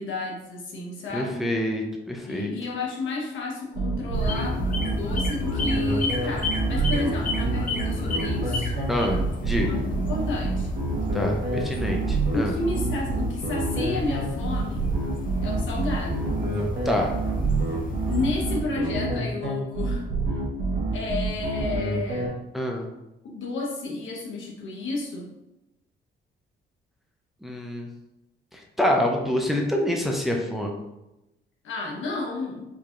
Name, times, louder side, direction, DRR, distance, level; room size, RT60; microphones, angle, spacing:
voice 1, 0.0-1.4 2.3-8.7 9.6-10.7 12.3-14.9 15.4-16.3 18.0-20.0 20.9-22.3 23.2-25.3 31.6-32.7, left 3 dB, 75° left, -2 dB, 1.0 m, -31 dB
voice 2, 1.1-2.5 8.9-9.7 11.1-12.5 16.8-17.1 22.5-22.9 27.4-27.9 28.5-30.8, left 1 dB, ahead, 1 dB, 0.6 m, -26 dB
sound 1, 3.7-22.3, right 3 dB, 60° right, 1.2 m, -27 dB
sound 2, 4.1-18.6, left 2 dB, 45° left, 0.7 m, -32 dB
4.7 x 2.8 x 2.4 m, 0.93 s
cardioid pair, 90°, 20 cm